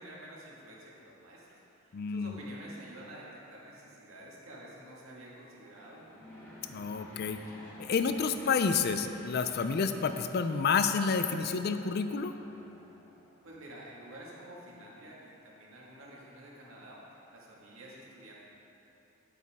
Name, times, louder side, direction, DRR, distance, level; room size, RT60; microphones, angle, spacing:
voice 1, 0.0-6.0 13.4-18.4, right 1 dB, 80° right, -5 dB, 1.9 m, -49 dB
voice 2, 1.9-2.4 6.7-7.4 7.8-12.3, left 5 dB, 50° left, 9 dB, 0.4 m, -29 dB
Aircraft / Engine, 5.5-13.4, equal, 10° left, 1.5 m, -53 dB
9.5 x 8.0 x 3.6 m, 3.0 s
head